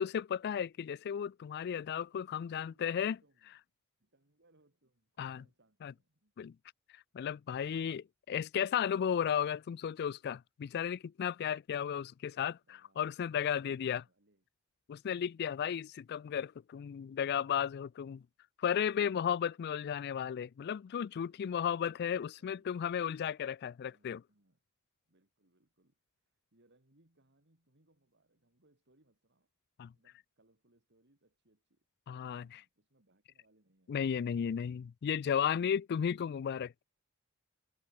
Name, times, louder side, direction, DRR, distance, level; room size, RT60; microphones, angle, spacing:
voice 1, 0.0-3.2 5.2-5.4 5.8-5.9 6.4-6.6 6.9-14.0 14.9-18.2 18.6-24.2 29.8-29.9 32.1-32.6 33.9-36.8, left 8 dB, 50° left, 0.3 m, -34 dB
voice 2, 2.5-3.6 4.0-6.3 12.6-14.4 21.2-22.0 22.4-23.1 23.8-24.6 25.1-26.0 26.2-29.5 29.9-31.9 32.2-34.0, right 2 dB, 55° right, 3.4 m, -72 dB
head